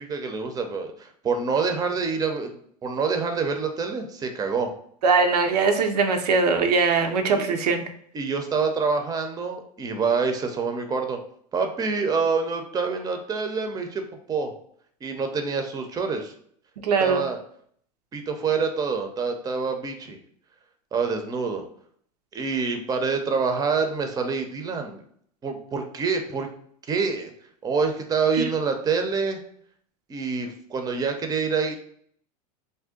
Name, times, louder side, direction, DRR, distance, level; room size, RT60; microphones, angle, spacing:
voice 1, 0.1-4.7 7.0-7.1 7.3-7.4 8.1-11.2 11.5-14.5 15.0-16.3 17.0-17.4 18.1-20.2 20.9-21.6 22.3-25.0 25.4-26.5 26.9-27.3 27.6-29.4 30.1-31.8, right 5 dB, 20° right, 5 dB, 0.5 m, -26 dB
voice 2, 5.0-7.8 16.8-17.2 28.4-28.5, right 4 dB, 85° right, 5 dB, 0.5 m, -21 dB
2.5 x 2.1 x 3.7 m, 0.62 s
hypercardioid pair, 100°, 20 cm